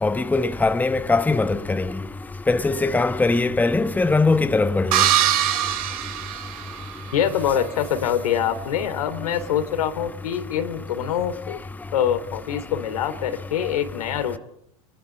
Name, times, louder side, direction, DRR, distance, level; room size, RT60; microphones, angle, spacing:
voice 1, 0.0-1.9 2.5-5.0, left 3 dB, 10° left, 1.0 m, -21 dB
sound 1, 4.9-7.1, right 11 dB, 70° right, 3.6 m, -22 dB
voice 2, 7.1-11.6 11.9-14.4, left 9 dB, 80° left, 3.3 m, -24 dB
27.5 x 21.0 x 8.5 m
hypercardioid pair, 100°, 19 cm